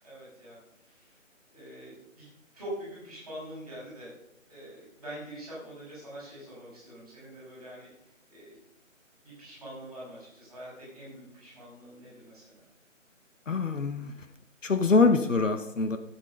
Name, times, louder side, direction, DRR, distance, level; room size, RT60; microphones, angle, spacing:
voice 1, 0.0-0.6 0.8-1.1 1.5-2.3 2.5-4.1 4.5-8.6 9.2-12.6, right 1 dB, ahead, -17 dB, 5.0 m, -44 dB
voice 2, 13.5-14.1 14.6-16.0, left 4 dB, 70° left, 9 dB, 1.1 m, -24 dB
12.0 x 8.5 x 5.4 m, 0.80 s
figure-of-eight pair, 180°, 39 cm